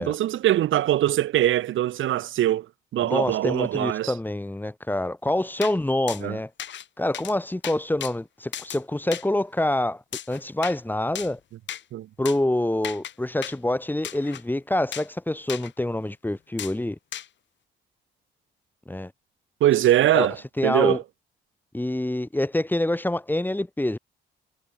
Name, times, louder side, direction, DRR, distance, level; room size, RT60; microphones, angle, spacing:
voice 1, 0.0-2.7 2.9-4.1 6.2-6.4 11.9-12.1 19.6-20.4 20.6-21.0, right 13 dB, 80° right, 3.6 m, -22 dB
voice 2, 3.0-6.5 7.0-10.0 10.3-11.4 12.2-17.0 18.9-19.1 20.1-21.0 21.7-24.0, left 1 dB, 10° left, 2.9 m, -26 dB
sound 1, 5.6-5.8 6.1-6.2 6.6-6.9 7.1-7.3 7.6-8.1 8.5-8.8 9.1-9.3 10.1-10.8 11.2-11.3 11.7-11.8 12.3-12.4 12.8-13.1 13.4-13.6 14.0-14.4 14.9-15.1 15.5-15.7 16.6-16.7 17.1-17.3, left 10 dB, 65° left, 4.8 m, -35 dB
cardioid pair, 90°, 20 cm